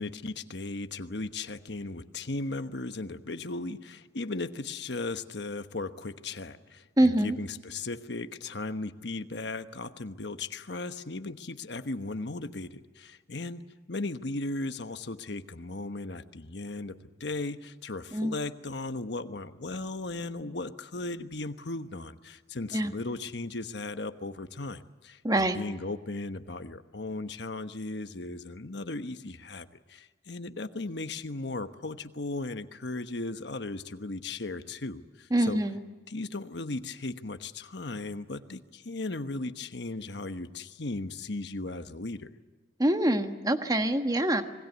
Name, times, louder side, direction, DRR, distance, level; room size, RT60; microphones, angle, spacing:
voice 1, 0.0-13.6 13.9-35.6 36.1-42.3, left 2 dB, 65° left, 9 dB, 1.2 m, -37 dB
voice 2, 7.0-7.4 18.1-18.4 22.7-22.9 25.2-25.6 35.3-35.8 42.8-44.4, right 1 dB, 20° right, 7 dB, 1.4 m, -25 dB
26.0 x 21.0 x 8.1 m, 1.3 s
head